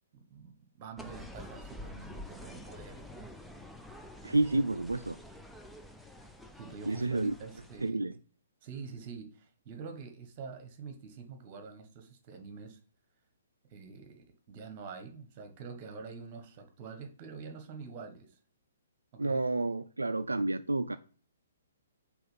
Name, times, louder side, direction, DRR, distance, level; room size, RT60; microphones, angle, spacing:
voice 1, 0.1-3.3 6.6-8.1 8.6-12.8 13.7-18.4 19.1-19.4, right 5 dB, 35° right, 1.4 m, -46 dB
sound 1, 1.0-7.9, left 1 dB, ahead, 0.5 m, -48 dB
voice 2, 4.2-5.2 6.8-7.3 7.8-8.1 19.2-21.0, right 2 dB, 80° right, 0.3 m, -30 dB
5.5 x 4.2 x 5.5 m
figure-of-eight pair, 125°, 0 cm